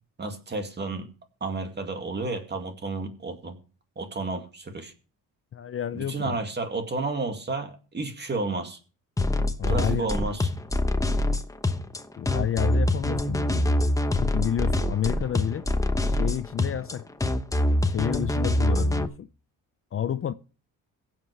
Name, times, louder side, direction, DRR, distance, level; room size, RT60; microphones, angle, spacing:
voice 1, 0.2-1.1 1.4-3.6 4.0-4.9 5.9-8.8 9.7-10.5, right 3 dB, 30° right, 2.2 m, -31 dB
voice 2, 5.5-6.4 9.6-10.1 12.2-13.8 14.2-15.7 16.1-17.1 17.8-19.3 19.9-20.3, left 10 dB, 40° left, 0.6 m, -30 dB
sound 1, 9.2-19.1, left 1 dB, 10° left, 0.9 m, -25 dB
22.0 x 7.5 x 3.3 m
cardioid pair, 120°, 36 cm